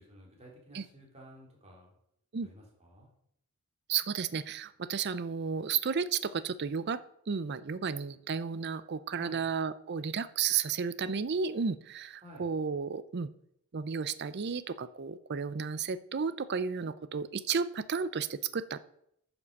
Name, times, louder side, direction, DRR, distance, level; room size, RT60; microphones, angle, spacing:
voice 1, 0.0-1.9 2.4-3.1 9.2-9.5 12.2-12.5, equal, 30° right, -1 dB, 3.0 m, -52 dB
voice 2, 3.9-7.0 7.3-13.3 13.7-18.8, right 6 dB, 50° right, 15 dB, 0.5 m, -33 dB
9.4 x 6.0 x 6.5 m, 0.75 s
head